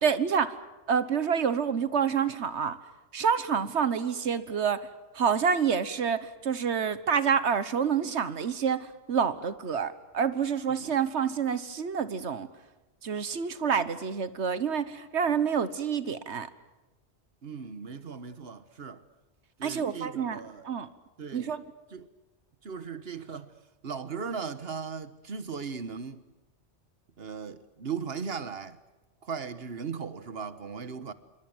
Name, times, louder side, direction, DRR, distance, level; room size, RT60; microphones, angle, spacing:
voice 1, 0.0-0.6 0.9-2.8 3.1-4.9 5.1-12.5 13.0-16.5 19.6-20.9 21.3-21.6, right 7 dB, 80° right, 1.5 m, -28 dB
voice 2, 17.4-19.0 19.6-20.7 21.2-21.5 21.9-22.1 22.6-23.5 23.8-26.2 27.2-28.8 29.2-31.1, right 6 dB, 60° right, 1.5 m, -37 dB
27.0 x 24.0 x 7.9 m
omnidirectional pair, 1.1 m